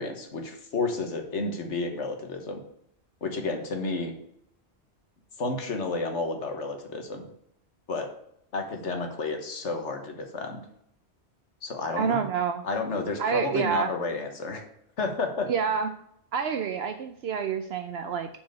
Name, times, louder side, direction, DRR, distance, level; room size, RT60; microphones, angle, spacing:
voice 1, 0.0-2.6 3.2-4.1 5.4-7.3 7.9-8.1 8.5-10.6 11.6-12.2 12.6-14.6 15.0-15.5, left 3 dB, 85° left, 4 dB, 1.6 m, -31 dB
voice 2, 12.0-12.6 13.2-13.9 15.5-15.9 16.3-18.3, right 7 dB, 70° right, 7 dB, 0.8 m, -28 dB
7.1 x 4.7 x 6.8 m, 0.72 s
omnidirectional pair, 1.2 m